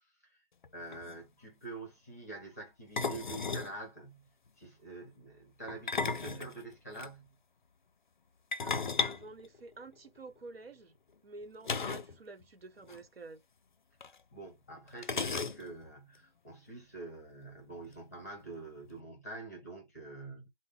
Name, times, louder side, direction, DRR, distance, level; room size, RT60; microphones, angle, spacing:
sound 1, 0.6-0.7 0.9-1.1 3.0-3.7 5.7-7.1 8.5-10.2 11.6-12.2 12.4-12.5 12.8-13.0 14.0-14.1 15.0-15.9, left 4 dB, 55° left, 0.5 m, -35 dB
voice 1, 0.7-4.3 4.6-7.3 14.3-20.5, right 3 dB, 15° left, 0.8 m, -46 dB
voice 2, 8.6-11.0 11.2-13.4, right 3 dB, 80° right, 1.0 m, -50 dB
3.6 x 2.1 x 3.5 m
hypercardioid pair, 175°, 30 cm